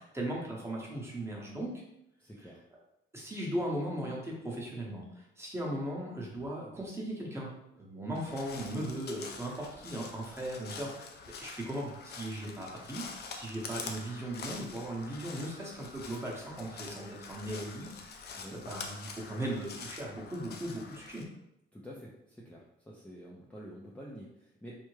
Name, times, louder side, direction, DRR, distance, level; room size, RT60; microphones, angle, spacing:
voice 1, 0.0-1.8 3.1-7.5 7.8-11.1 11.4-13.0 13.3-17.9 18.5-21.2, right 1 dB, 15° right, -3 dB, 1.0 m, -38 dB
voice 2, 2.2-2.6 18.4-18.6 21.7-24.8, equal, 5° left, -5 dB, 0.5 m, -48 dB
Crow, 8.2-21.2, left 4 dB, 55° left, 0.5 m, -46 dB
3.4 x 2.1 x 3.2 m, 0.82 s
cardioid pair, 90°, 20 cm